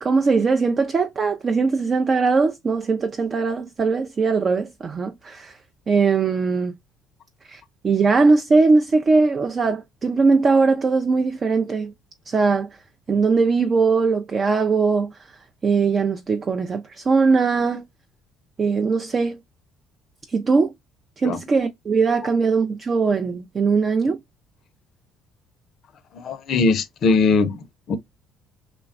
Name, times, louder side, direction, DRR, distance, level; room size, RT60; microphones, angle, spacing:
voice 1, 0.0-5.5 5.9-6.7 7.5-11.9 12.3-12.7 13.1-15.1 15.6-17.8 18.6-19.4 20.3-20.7 21.2-24.2, right 4 dB, 40° right, 0.4 m, -20 dB
voice 2, 26.1-27.6 27.9-28.0, left 4 dB, 60° left, 0.5 m, -20 dB
3.1 x 2.1 x 2.3 m
hypercardioid pair, 65°, 0 cm